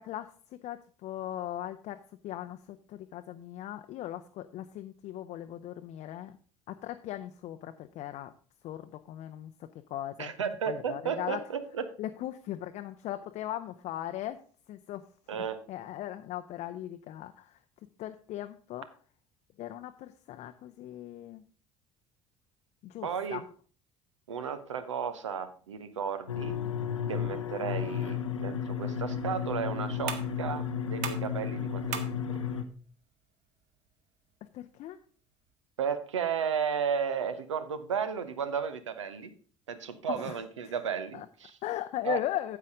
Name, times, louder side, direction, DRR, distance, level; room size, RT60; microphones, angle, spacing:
voice 1, 0.0-6.4 6.7-8.3 8.6-9.5 9.9-10.3 10.7-11.4 12.0-14.4 14.7-17.6 18.0-18.9 19.6-21.4 22.8-23.4 27.6-27.7 34.5-35.0 40.1-40.4 41.1-41.3 41.6-42.6, left 13 dB, 45° left, 8 dB, 0.5 m, -38 dB
voice 2, 10.2-11.8 15.3-15.6 23.0-23.4 24.3-26.6 27.1-31.9 32.3-32.4 35.8-39.3 39.7-41.6 42.0-42.2, right 7 dB, 75° right, 11 dB, 0.8 m, -33 dB
sound 1, 26.3-32.6, left 7 dB, 85° left, 0.7 m, -33 dB
sound 2, 28.7-35.5, right 7 dB, 50° right, 1.1 m, -45 dB
9.3 x 7.6 x 3.7 m, 0.41 s
figure-of-eight pair, 60°, 16 cm